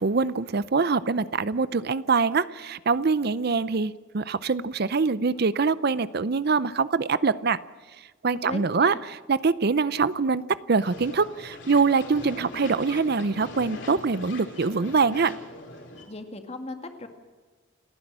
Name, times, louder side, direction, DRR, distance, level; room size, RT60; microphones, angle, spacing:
voice 1, 0.0-7.6 8.2-15.3, right 4 dB, 50° right, 17 dB, 0.6 m, -24 dB
voice 2, 8.4-9.0 16.1-17.1, left 2 dB, 30° left, 6 dB, 2.0 m, -37 dB
sound 1, 10.8-16.0, left 2 dB, 65° left, 4.9 m, -41 dB
29.5 x 10.5 x 8.7 m, 1.4 s
head